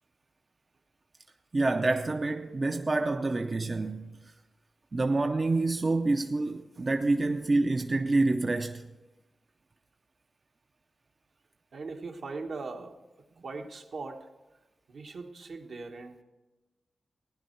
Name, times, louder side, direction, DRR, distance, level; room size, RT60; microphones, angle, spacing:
voice 1, 1.5-4.3 4.9-8.9, right 2 dB, 35° right, 0.6 m, -27 dB
voice 2, 11.7-13.0 13.4-14.3 14.9-16.2, right 3 dB, 70° right, 1.2 m, -40 dB
16.0 x 10.0 x 4.5 m
cardioid pair, 80°, 0 cm